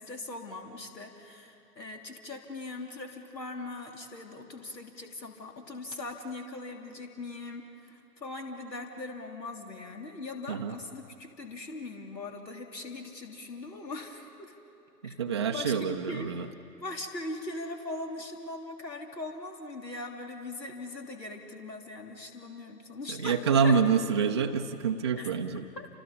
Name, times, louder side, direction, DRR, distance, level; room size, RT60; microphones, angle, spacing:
voice 1, 0.0-14.5 15.0-15.2 15.5-16.4 16.8-23.8 25.2-25.3 25.8-25.9, left 2 dB, 80° left, 3 dB, 3.3 m, -40 dB
voice 2, 15.0-16.5 23.1-25.6, right 6 dB, 20° right, 3 dB, 0.5 m, -27 dB
29.5 x 27.5 x 5.5 m, 2.8 s
figure-of-eight pair, 130°, 50 cm